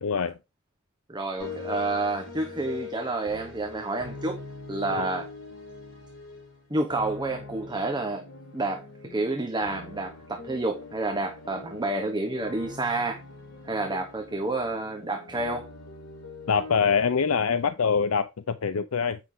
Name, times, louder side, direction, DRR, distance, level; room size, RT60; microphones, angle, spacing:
voice 1, 0.0-0.4 5.0-5.1 16.5-19.2, left 6 dB, 85° left, 0.6 m, -24 dB
voice 2, 1.1-4.4 4.7-5.3 6.7-8.3 8.5-13.2 13.6-15.7, right 2 dB, 20° right, 1.1 m, -29 dB
sound 1, 1.4-17.7, left 4 dB, 65° left, 5.4 m, -42 dB
8.7 x 5.6 x 3.7 m
head